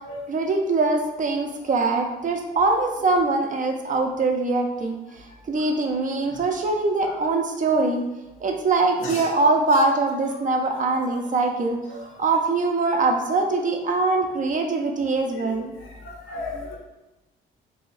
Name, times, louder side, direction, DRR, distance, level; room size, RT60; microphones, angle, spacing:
voice 1, 0.3-8.0 8.4-15.7, right 3 dB, 40° right, 3 dB, 0.6 m, -23 dB
voice 2, 16.0-16.8, left 2 dB, 80° left, -1 dB, 0.9 m, -33 dB
3.0 x 2.8 x 4.0 m, 1.0 s
cardioid pair, 90°, 20 cm